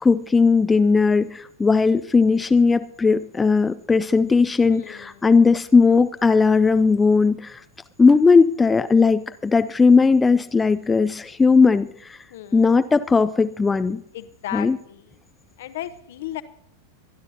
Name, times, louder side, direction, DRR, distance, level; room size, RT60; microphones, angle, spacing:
voice 1, 0.0-7.6 8.0-12.2 12.5-14.0 14.5-14.8, left 4 dB, 15° left, 11 dB, 0.4 m, -17 dB
voice 2, 4.7-5.3 12.3-12.8 14.1-15.1 15.6-16.4, left 13 dB, 55° left, 12 dB, 1.0 m, -35 dB
24.5 x 11.0 x 2.8 m, 0.71 s
figure-of-eight pair, 90°, 0 cm